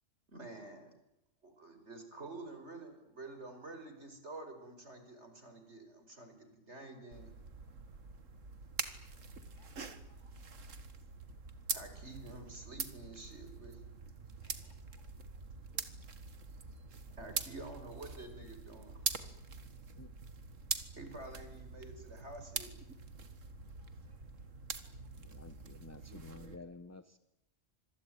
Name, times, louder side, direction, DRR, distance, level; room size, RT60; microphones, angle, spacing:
voice 1, 0.3-0.9 1.4-7.3 11.7-13.9 17.1-19.0 21.0-22.7, right 2 dB, 60° right, 7 dB, 5.1 m, -49 dB
sound 1, 7.1-26.6, right 5 dB, 90° right, 2.1 m, -44 dB
voice 2, 9.5-10.4 14.4-15.0 15.3-15.4 15.7-15.8 23.8-24.3 24.8-25.3, left 1 dB, 40° left, 6 dB, 5.1 m, -72 dB
voice 3, 25.1-27.2, left 3 dB, 15° left, 13 dB, 0.9 m, -52 dB
26.5 x 22.5 x 9.2 m, 0.85 s
omnidirectional pair, 1.3 m